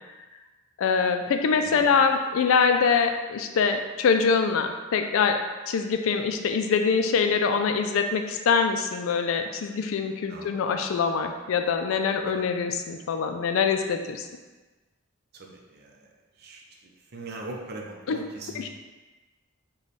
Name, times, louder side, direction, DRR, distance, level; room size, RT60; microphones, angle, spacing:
voice 1, 0.8-5.4 5.7-14.3 18.1-18.2 18.6-18.7, left 5 dB, 75° left, 6 dB, 0.3 m, -24 dB
voice 2, 1.5-2.0 10.3-10.6 12.3-12.4 15.3-16.1 16.4-18.7, right 2 dB, 50° right, 0 dB, 0.5 m, -41 dB
3.2 x 2.3 x 4.0 m, 1.2 s
head